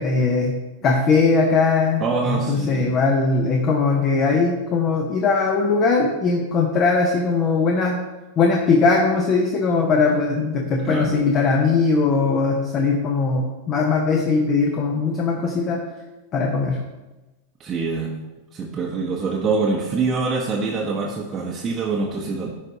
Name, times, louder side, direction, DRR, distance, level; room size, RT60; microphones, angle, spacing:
voice 1, 0.0-8.0 8.4-15.8 16.3-16.8, left 4 dB, 35° left, 2 dB, 0.8 m, -20 dB
voice 2, 2.0-3.0 10.8-11.1 17.6-18.1 18.5-22.5, right 4 dB, 25° right, -2 dB, 0.8 m, -25 dB
10.5 x 3.8 x 2.8 m, 1.1 s
figure-of-eight pair, 95°, 0 cm